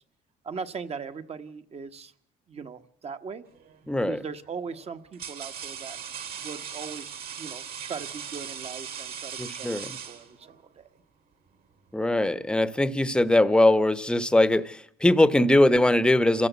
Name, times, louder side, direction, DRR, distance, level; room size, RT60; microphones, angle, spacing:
voice 1, 0.4-2.1 2.5-3.4 4.1-6.0 6.4-7.1 7.4-9.8 10.1-10.9, right 5 dB, 40° right, 1.3 m, -39 dB
sound 1, 3.6-3.9 4.7-10.6, right 8 dB, 60° right, 3.6 m, -39 dB
voice 2, 3.9-4.2 9.4-9.9 11.9-16.5, left 1 dB, 5° left, 1.0 m, -21 dB
27.5 x 15.5 x 8.2 m
cardioid pair, 110°, 17 cm